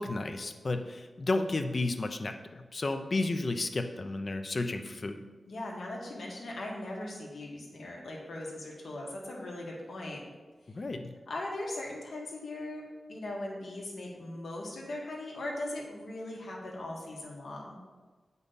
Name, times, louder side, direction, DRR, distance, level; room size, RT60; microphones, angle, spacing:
voice 1, 0.0-5.2 10.7-11.1, left 2 dB, 45° left, 7 dB, 0.5 m, -32 dB
voice 2, 5.5-10.2 11.3-12.8 13.1-17.8, left 1 dB, 85° left, -2 dB, 1.7 m, -39 dB
8.1 x 5.4 x 4.0 m, 1.3 s
wide cardioid pair, 115°, 0 cm